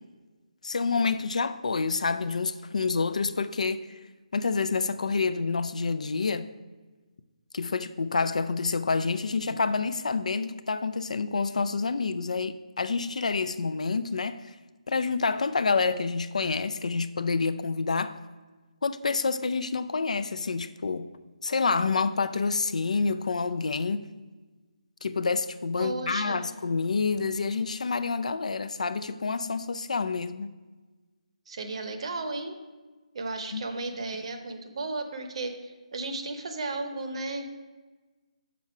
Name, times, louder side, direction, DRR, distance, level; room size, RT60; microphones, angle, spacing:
voice 1, 0.6-3.8 4.3-6.5 7.5-14.5 14.9-18.1 18.8-21.1 21.4-24.0 25.0-30.5 33.5-33.6, left 4 dB, 65° left, 12 dB, 0.4 m, -28 dB
voice 2, 25.8-26.5 31.5-32.6 33.1-37.6, right 2 dB, 50° right, 7 dB, 0.8 m, -34 dB
6.1 x 4.3 x 5.9 m, 1.3 s
figure-of-eight pair, 155°, 4 cm